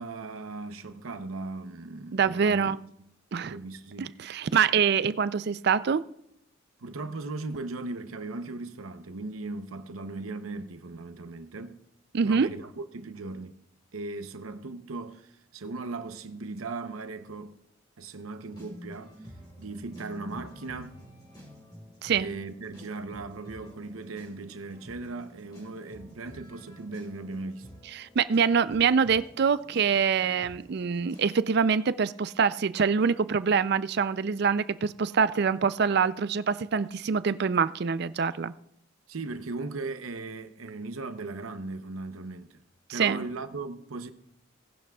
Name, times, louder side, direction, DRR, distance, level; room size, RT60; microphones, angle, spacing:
voice 1, 0.0-2.7 3.4-4.1 6.8-11.8 12.2-13.6 13.9-17.6 18.0-19.2 19.6-21.0 22.2-27.7 39.1-42.6 42.9-44.1, right 3 dB, 85° right, 0.8 m, -38 dB
voice 2, 2.1-2.8 3.3-3.5 4.0-6.0 12.1-12.5 22.0-22.3 27.9-38.5 42.9-43.2, right 6 dB, 50° right, 0.4 m, -25 dB
sound 1, 18.5-31.3, equal, 20° left, 3.5 m, -49 dB
18.0 x 11.0 x 2.3 m
head